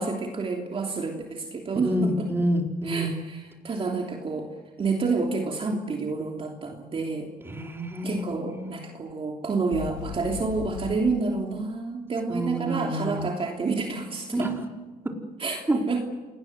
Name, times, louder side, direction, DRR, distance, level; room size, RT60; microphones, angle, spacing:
voice 1, 0.0-2.3 2.8-4.5 4.8-7.3 8.0-14.5 15.4-16.0, right 4 dB, 35° right, 1 dB, 3.1 m, -29 dB
voice 2, 1.8-3.1 7.4-8.7 12.3-13.3 14.3-14.5 15.7-15.8, equal, 15° right, 2 dB, 4.4 m, -28 dB
sound 1, 9.7-11.0, left 9 dB, 90° left, 2.7 m, -37 dB
27.5 x 20.0 x 8.0 m, 1.2 s
cardioid pair, 110°, 17 cm